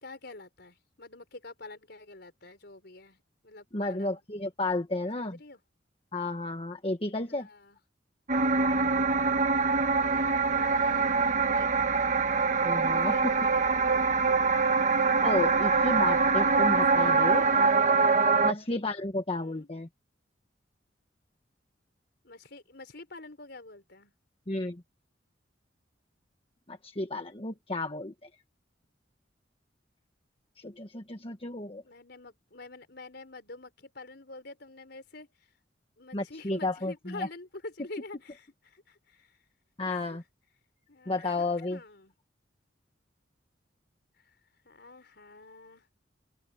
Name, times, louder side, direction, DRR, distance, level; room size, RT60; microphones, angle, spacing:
voice 1, 0.0-4.2 5.2-5.6 7.3-7.8 10.0-11.9 13.1-13.7 16.9-17.7 19.4-19.7 22.2-24.1 31.8-35.3 36.0-39.4 39.8-40.2 40.9-42.1 44.2-44.3 44.6-45.9, left 3 dB, 65° left, 4.8 m, -47 dB
voice 2, 3.7-5.4 6.1-7.5 12.6-13.2 15.2-17.4 18.4-19.9 24.5-24.8 26.7-28.1 30.6-31.8 36.1-37.3 39.8-40.2 41.1-41.8, left 2 dB, 30° left, 1.4 m, -32 dB
sound 1, 8.3-18.5, right 4 dB, 45° right, 1.4 m, -24 dB
open air
head